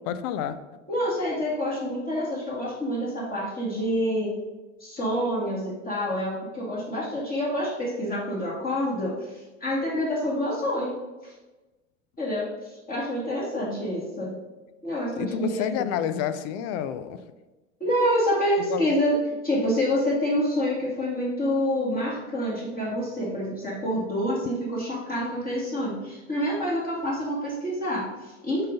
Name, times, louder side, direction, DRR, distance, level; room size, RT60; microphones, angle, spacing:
voice 1, 0.1-0.6 15.2-17.2 18.6-18.9, left 9 dB, 55° left, 12 dB, 0.6 m, -29 dB
voice 2, 0.9-4.3 4.8-11.0 11.2-11.3 12.2-14.4 14.8-15.9 17.8-19.2 19.4-28.6, equal, 25° left, -6 dB, 2.1 m, -27 dB
5.4 x 4.0 x 5.2 m, 1.1 s
hypercardioid pair, 90°, 37 cm